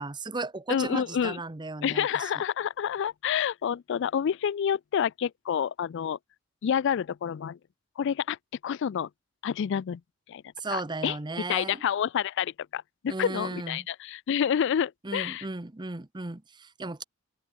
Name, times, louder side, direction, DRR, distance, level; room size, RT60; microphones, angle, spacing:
voice 1, 0.0-2.3 10.6-11.8 13.1-13.9 15.0-17.0, right 3 dB, 20° right, 0.8 m, -35 dB
voice 2, 0.7-1.4 1.8-6.2 6.6-7.6 8.0-8.4 8.6-9.1 9.4-10.0 10.3-10.4 10.7-11.2 11.5-15.5, left 8 dB, 60° left, 0.3 m, -28 dB
open air
head